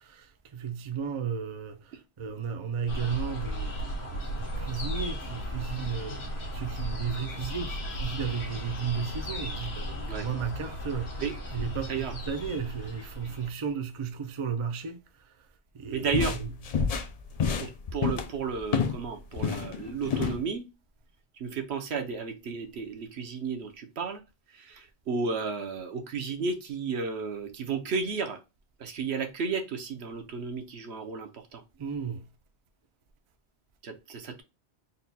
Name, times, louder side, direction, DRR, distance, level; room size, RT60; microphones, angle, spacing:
voice 1, 0.0-15.5 15.7-16.7 31.8-32.3, right 6 dB, 45° right, 0.4 m, -34 dB
sound 1, 2.9-13.5, equal, 70° left, 1.5 m, -36 dB
voice 2, 11.2-11.6 11.9-12.1 15.9-16.3 17.6-20.7 21.4-24.2 24.5-28.4 28.8-31.6 33.8-34.4, right 5 dB, 75° right, 1.0 m, -33 dB
sound 2, 15.9-19.0 19.3-20.4, left 6 dB, 55° left, 0.4 m, -29 dB
4.1 x 2.2 x 4.0 m
omnidirectional pair, 1.1 m